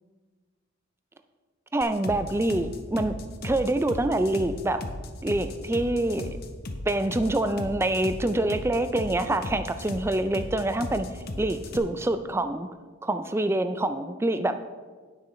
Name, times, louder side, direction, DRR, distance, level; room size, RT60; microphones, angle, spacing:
voice 1, 1.7-4.8 5.2-6.3 6.9-11.1 11.4-12.7 13.0-14.6, right 1 dB, 10° right, 9 dB, 0.3 m, -26 dB
sound 1, 1.8-11.8, left 1 dB, 45° left, 0.8 m, -36 dB
17.0 x 6.2 x 3.2 m, 1.4 s
head